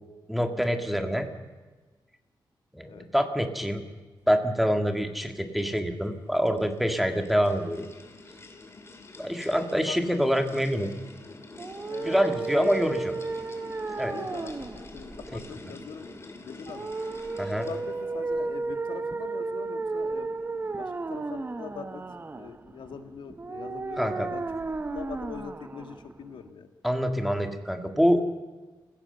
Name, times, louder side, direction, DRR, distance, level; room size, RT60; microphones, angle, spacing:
voice 1, 0.3-1.3 2.7-3.8 4.3-7.9 9.2-10.9 12.1-13.0 14.0-14.1 15.3-15.4 17.4-17.7 24.0-24.3 26.8-28.4, equal, ahead, 6 dB, 1.8 m, -26 dB
sound 1, 6.0-18.2, left 3 dB, 35° left, 2.5 m, -47 dB
voice 2, 9.9-10.3 11.8-12.8 14.1-16.9 17.6-22.0 22.3-24.4 24.9-26.7, left 6 dB, 90° left, 8 dB, 1.8 m, -42 dB
sound 2, 11.5-26.5, right 3 dB, 25° right, 0.8 m, -34 dB
28.0 x 16.0 x 6.8 m, 1.3 s
wide cardioid pair, 120°, 8 cm